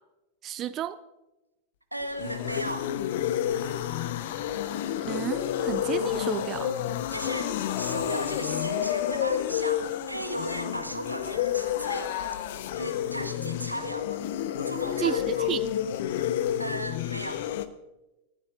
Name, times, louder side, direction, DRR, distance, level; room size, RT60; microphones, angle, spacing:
voice 1, 0.4-1.0 5.0-6.8 15.0-15.6, right 11 dB, 30° right, 14 dB, 0.5 m, -32 dB
voice 2, 1.9-2.9 7.1-12.1 12.7-14.2 14.5-15.5 16.6-17.4, right 1 dB, 90° right, 5 dB, 1.5 m, -36 dB
sound 1, 2.0-17.7, left 10 dB, 55° left, 0.9 m, -30 dB
29.0 x 14.5 x 2.5 m, 1.0 s
figure-of-eight pair, 90°, 0 cm